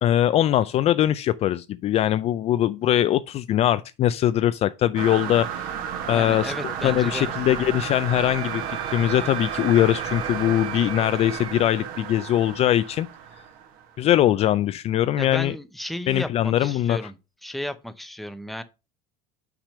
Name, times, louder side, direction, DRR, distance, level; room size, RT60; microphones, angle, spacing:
voice 1, 0.0-5.7 6.1-13.1 14.0-15.5 16.1-17.0, left 12 dB, 40° left, 0.4 m, -22 dB
sound 1, 5.0-13.9, right 8 dB, 55° right, 1.5 m, -32 dB
voice 2, 6.1-7.3 15.2-17.2 17.4-18.6, left 1 dB, ahead, 0.7 m, -33 dB
Wind instrument woodwind instrument, 8.2-11.5, right 9 dB, 30° right, 0.9 m, -40 dB
6.0 x 5.0 x 5.5 m
cardioid pair, 135°, 17 cm